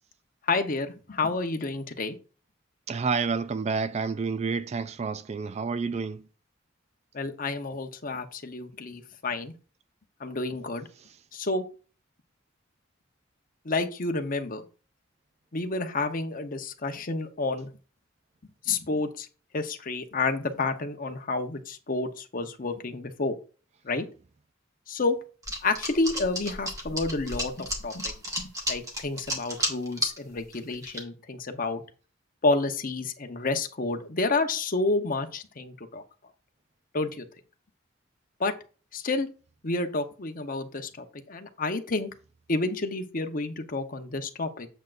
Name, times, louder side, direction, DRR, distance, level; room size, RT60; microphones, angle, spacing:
voice 1, 0.4-2.2 7.1-9.5 10.2-10.9 11.3-11.6 13.6-14.6 15.5-17.7 18.6-19.3 19.5-23.3 23.8-24.0 24.9-25.2 25.6-31.8 32.4-36.0 36.9-37.2 38.4-38.5 38.9-39.3 39.6-42.1 42.5-44.7, left 3 dB, 45° left, 0.9 m, -30 dB
voice 2, 2.9-6.2, right 5 dB, 35° right, 0.3 m, -29 dB
sound 1, 25.4-30.2 30.5-31.0, equal, 15° right, 1.8 m, -31 dB
8.2 x 7.6 x 2.5 m
head